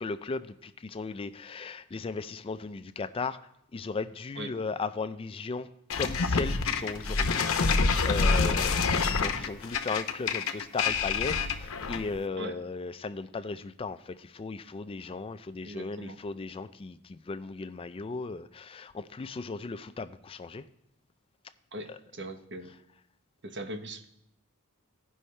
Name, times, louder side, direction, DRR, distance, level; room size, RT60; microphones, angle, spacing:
voice 1, 0.0-3.4 3.7-5.7 6.0-8.7 9.2-20.7 21.9-22.0, left 4 dB, 25° left, 12 dB, 0.3 m, -36 dB
sound 1, 5.9-12.2, left 4 dB, 70° left, 0.7 m, -27 dB
voice 2, 15.6-16.2 21.7-22.7 23.4-24.1, right 1 dB, 55° right, 6 dB, 0.9 m, -39 dB
16.0 x 5.5 x 3.2 m, 0.76 s
head